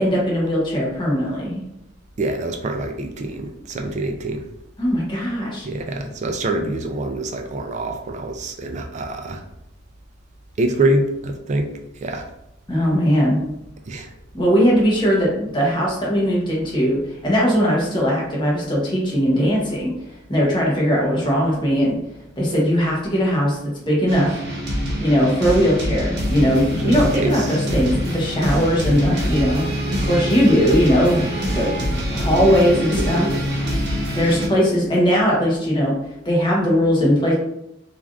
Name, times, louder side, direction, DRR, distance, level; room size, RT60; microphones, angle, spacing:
voice 1, 0.0-1.6 4.8-5.7 12.7-13.4 14.3-19.9 20.3-22.0 22.4-23.6 23.9-24.4 25.0-31.7 32.1-33.3 34.1-35.9 36.2-37.3, equal, 25° left, -4 dB, 0.8 m, -19 dB
voice 2, 2.2-4.5 5.6-9.4 10.6-11.7 12.0-12.3 13.9-14.1 26.8-27.8 32.4-33.5, right 2 dB, 35° right, 3 dB, 0.3 m, -25 dB
sound 1, 24.1-34.5, equal, 60° right, 0.9 m, -25 dB
3.3 x 2.4 x 2.3 m, 0.82 s
head